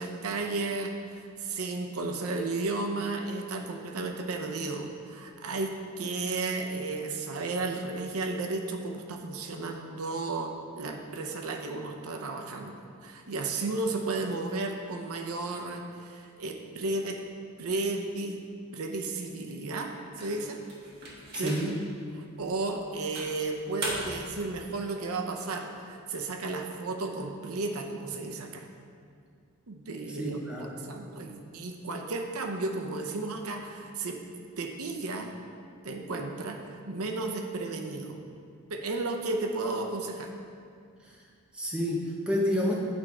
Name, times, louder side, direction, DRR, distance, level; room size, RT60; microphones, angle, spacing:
voice 1, 0.0-17.2 17.6-18.4 18.7-20.6 21.4-21.5 22.2-28.7 29.7-34.2 34.6-35.3 35.8-36.6 36.8-38.2 38.7-40.3, right 3 dB, 90° right, 3 dB, 0.7 m, -33 dB
sound 1, 20.2-21.9 22.4-22.6 23.1-24.3, right 1 dB, 50° right, 1.3 m, -38 dB
voice 2, 21.3-21.8 30.1-30.8 41.0-41.2 41.5-42.7, equal, 5° right, -3 dB, 0.9 m, -29 dB
8.6 x 4.4 x 4.8 m, 2.3 s
head